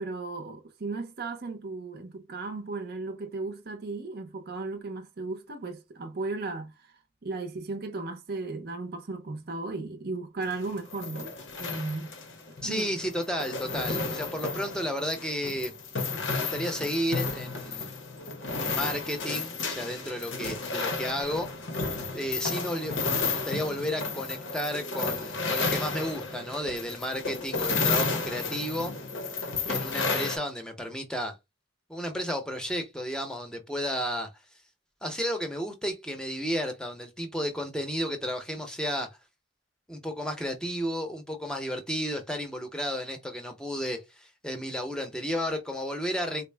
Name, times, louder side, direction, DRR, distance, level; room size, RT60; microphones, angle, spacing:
voice 1, 0.0-6.9 7.2-11.3 11.6-12.1 12.6-12.9, right 3 dB, 50° right, 0.5 m, -35 dB
sound 1, 10.4-30.4, left 4 dB, 70° left, 0.8 m, -32 dB
voice 2, 12.6-15.7 16.4-17.9 18.6-21.5 22.1-22.9 23.2-28.9 29.7-31.4 31.9-34.3 35.0-39.1 39.9-46.4, equal, 5° left, 0.6 m, -32 dB
4.1 x 2.0 x 3.3 m
head